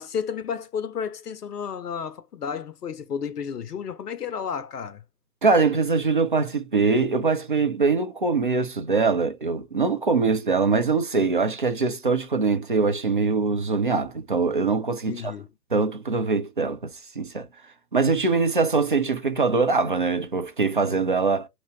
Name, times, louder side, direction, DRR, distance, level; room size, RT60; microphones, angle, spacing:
voice 1, 0.0-5.0 15.1-15.5, left 7 dB, 85° left, 0.6 m, -32 dB
voice 2, 5.4-15.3 15.7-17.5 17.9-21.5, right 4 dB, 35° right, 0.4 m, -23 dB
2.8 x 2.6 x 2.9 m
figure-of-eight pair, 125°, 47 cm